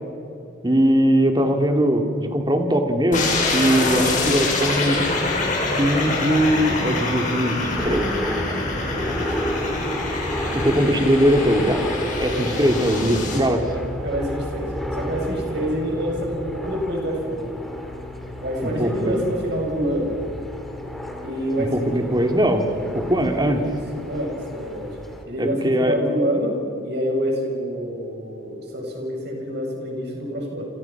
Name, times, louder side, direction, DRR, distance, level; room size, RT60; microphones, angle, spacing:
voice 1, 0.6-5.0 5.7-8.2 10.5-11.9 12.2-13.7 18.6-19.2 21.6-22.7 22.9-23.6 25.4-26.0, equal, 20° right, 5 dB, 2.4 m, -20 dB
sound 1, 3.1-13.4, left 2 dB, 40° left, 6.9 m, -25 dB
sound 2, 7.7-25.2, equal, ahead, 2.7 m, -32 dB
voice 2, 8.9-9.5 14.0-17.6 18.4-20.1 21.2-21.9 22.2-22.3 23.5-24.9 25.3-26.5 26.8-30.7, equal, 55° right, 0 dB, 7.7 m, -27 dB
29.5 x 28.0 x 6.0 m, 2.8 s
head